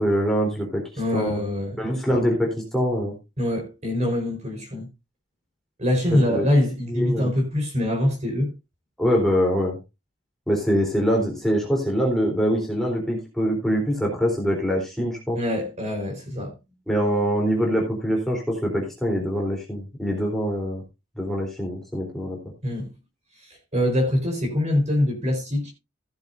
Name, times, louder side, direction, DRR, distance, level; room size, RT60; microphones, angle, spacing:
voice 1, 0.0-0.8 1.1-1.4 1.8-3.1 6.1-6.5 6.9-7.3 9.0-9.8 10.5-15.4 16.9-20.8 21.2-22.4, equal, ahead, 3.7 m, -24 dB
voice 2, 1.0-1.8 3.4-4.9 5.8-8.5 15.3-16.6 22.6-22.9 23.4-25.7, left 1 dB, 35° right, 4.5 m, -24 dB
15.5 x 10.5 x 2.6 m
head